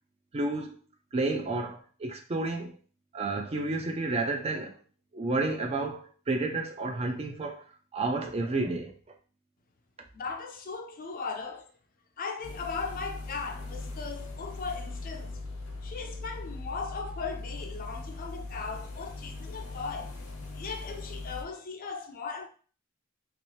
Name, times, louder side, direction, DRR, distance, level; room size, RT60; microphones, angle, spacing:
voice 1, 0.3-0.8 1.1-2.7 3.1-4.8 5.1-9.0, right 2 dB, 30° right, 0.4 m, -31 dB
voice 2, 10.1-11.7 12.2-15.4 15.8-20.2 20.5-22.5, left 4 dB, 40° left, 0.5 m, -38 dB
sound 1, 12.4-21.4, left 2 dB, 90° left, 1.0 m, -40 dB
3.0 x 2.9 x 3.1 m
head